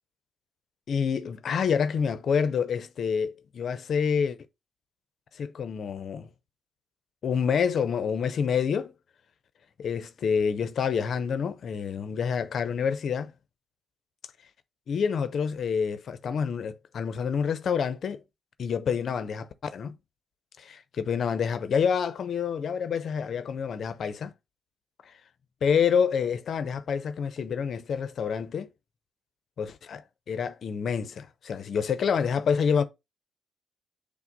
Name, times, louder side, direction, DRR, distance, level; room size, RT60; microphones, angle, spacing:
voice 1, 0.9-4.4 5.3-6.3 7.2-8.9 9.8-13.3 14.9-18.2 18.6-20.0 20.6-24.3 25.1-25.2 25.6-28.7 29.6-32.8, left 6 dB, 60° left, 0.5 m, -27 dB
5.8 x 2.0 x 3.8 m
supercardioid pair, 65°, 0 cm